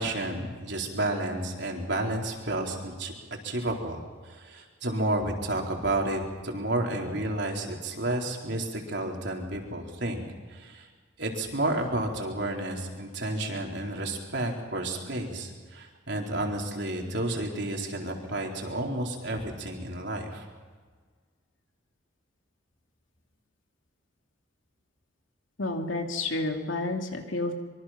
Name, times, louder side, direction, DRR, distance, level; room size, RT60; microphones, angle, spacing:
voice 1, 0.0-3.1 3.4-10.2 10.5-10.9 11.2-20.4, right 1 dB, 60° right, 1 dB, 4.1 m, -31 dB
voice 2, 25.6-27.5, left 2 dB, 75° left, 3 dB, 2.8 m, -30 dB
25.5 x 24.0 x 5.9 m, 1.5 s
head